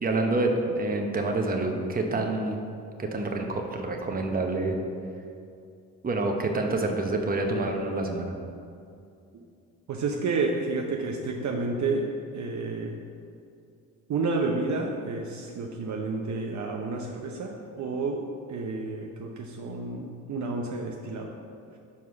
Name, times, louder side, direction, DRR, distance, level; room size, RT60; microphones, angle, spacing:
voice 1, 0.0-2.6 3.0-4.8 6.0-8.3, right 2 dB, 20° right, 2 dB, 1.0 m, -27 dB
voice 2, 9.9-13.0 14.1-18.2 18.5-21.3, right 3 dB, 45° right, 1 dB, 0.8 m, -30 dB
5.6 x 4.6 x 5.9 m, 2.4 s
supercardioid pair, 65°, 39 cm